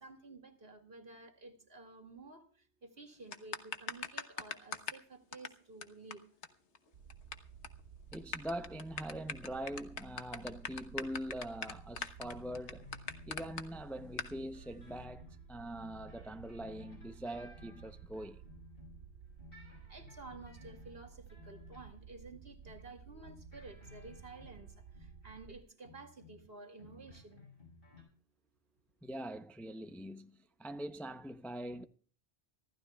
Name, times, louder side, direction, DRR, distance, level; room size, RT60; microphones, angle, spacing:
voice 1, 0.0-2.4 2.8-6.2 19.9-24.7 25.2-27.4, right 3 dB, 60° right, 2.5 m, -52 dB
sound 1, 3.3-5.0 5.3-5.5 5.8-5.9 6.1-6.2 6.4-6.5 6.7-7.3 7.6-7.8 8.1-13.6 14.2-14.3, left 6 dB, 80° left, 1.5 m, -40 dB
sound 2, 6.9-25.6, right 7 dB, 80° right, 1.1 m, -55 dB
voice 2, 8.1-12.9 13.3-18.4 29.0-31.8, right 1 dB, ahead, 0.6 m, -43 dB
sound 3, 11.6-19.1 19.4-22.9 23.2-25.5 25.8-26.5 26.8-28.0, left 4 dB, 55° left, 5.8 m, -57 dB
25.0 x 15.5 x 2.3 m
omnidirectional pair, 1.2 m